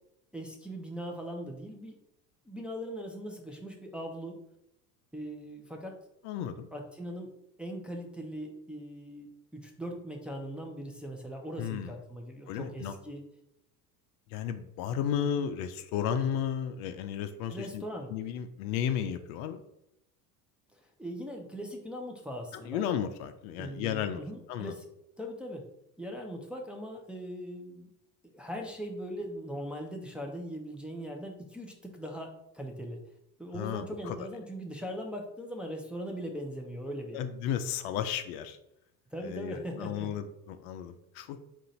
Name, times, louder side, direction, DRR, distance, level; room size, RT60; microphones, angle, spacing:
voice 1, 0.3-2.0 2.5-4.4 5.1-6.0 6.7-7.3 7.6-13.2 15.1-15.4 17.5-18.1 20.8-22.8 23.6-24.8 25.2-25.6 26.0-27.9 28.2-33.0 33.4-37.2 39.1-40.1, equal, ahead, 0 dB, 0.6 m, -40 dB
voice 2, 6.2-6.7 11.6-11.9 12.5-12.9 14.3-17.8 18.1-19.6 22.5-24.2 24.5-24.7 33.5-34.3 37.1-38.6 39.2-41.4, left 9 dB, 60° left, 9 dB, 0.5 m, -33 dB
3.8 x 2.5 x 4.2 m, 0.82 s
hypercardioid pair, 70°, 50 cm